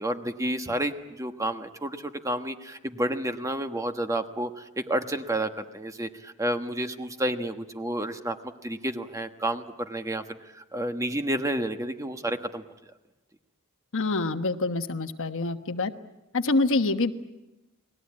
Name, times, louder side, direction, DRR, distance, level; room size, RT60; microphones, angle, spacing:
voice 1, 0.0-12.6, right 1 dB, 15° right, 7 dB, 1.3 m, -30 dB
voice 2, 13.9-15.9 16.3-17.1, left 3 dB, 60° left, 8 dB, 1.3 m, -26 dB
30.0 x 21.0 x 8.7 m, 1.0 s
head